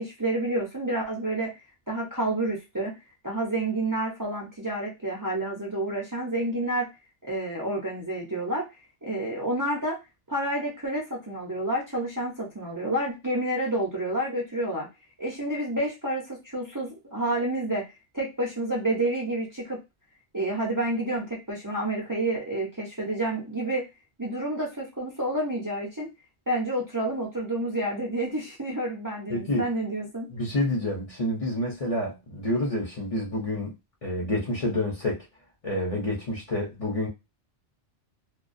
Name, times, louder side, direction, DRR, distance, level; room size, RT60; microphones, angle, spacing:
voice 1, 0.0-1.6 1.9-3.0 3.2-6.9 7.2-8.6 9.0-10.0 10.3-14.9 15.2-17.9 18.1-19.8 20.3-23.9 24.2-26.1 26.5-30.3, right 1 dB, 25° right, 0.5 m, -29 dB
voice 2, 29.3-29.7 30.3-33.7 34.0-35.2 35.6-37.1, left 1 dB, 40° left, 0.6 m, -28 dB
2.3 x 2.2 x 2.5 m
omnidirectional pair, 1.1 m